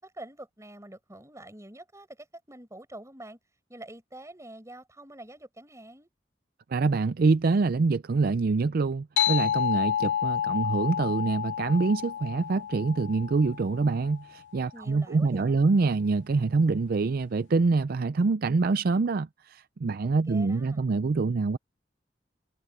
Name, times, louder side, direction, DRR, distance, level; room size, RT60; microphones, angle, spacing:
voice 1, 0.0-3.4 3.7-6.1 14.7-15.7 20.0-20.9, right 1 dB, 15° right, 6.3 m, -46 dB
voice 2, 6.7-21.6, right 3 dB, 55° right, 0.5 m, -25 dB
sound 1, 9.2-14.1, left 10 dB, 90° left, 0.5 m, -29 dB
head